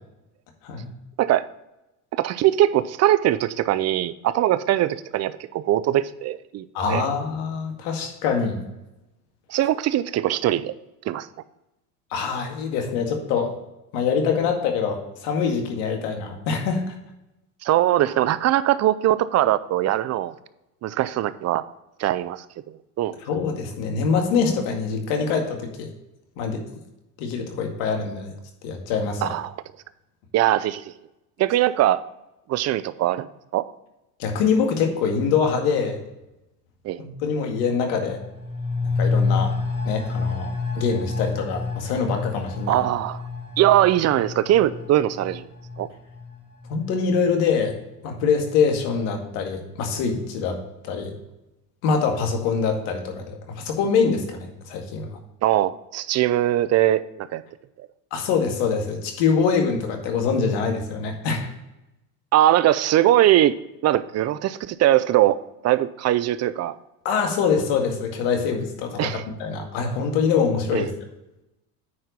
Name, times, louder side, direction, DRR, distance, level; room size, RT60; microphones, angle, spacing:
voice 1, 2.1-7.1 9.5-10.7 11.1-11.3 17.6-20.3 20.8-21.6 22.0-22.4 23.0-23.1 29.2-29.5 30.3-30.9 31.4-32.0 32.5-33.3 33.5-33.7 36.8-37.1 42.7-43.2 43.6-45.5 45.8-45.9 55.4-57.4 62.3-63.6 63.8-65.4 65.6-66.8 69.0-69.2 70.7-70.9, right 13 dB, 35° right, 16 dB, 0.5 m, -21 dB
voice 2, 6.7-8.6 12.1-13.5 13.9-16.9 23.2-25.9 26.4-26.6 27.2-28.3 28.6-29.3 34.2-36.0 37.0-38.2 38.8-39.5 39.9-40.5 40.8-42.8 46.7-47.8 48.0-50.6 50.8-51.1 51.8-55.1 58.1-61.5 67.1-70.9, left 5 dB, 70° left, 3 dB, 2.0 m, -24 dB
sound 1, 37.9-47.3 47.6-47.7, left 4 dB, 10° right, 2.2 m, -29 dB
9.5 x 4.6 x 5.1 m, 0.94 s
supercardioid pair, 95°, 44 cm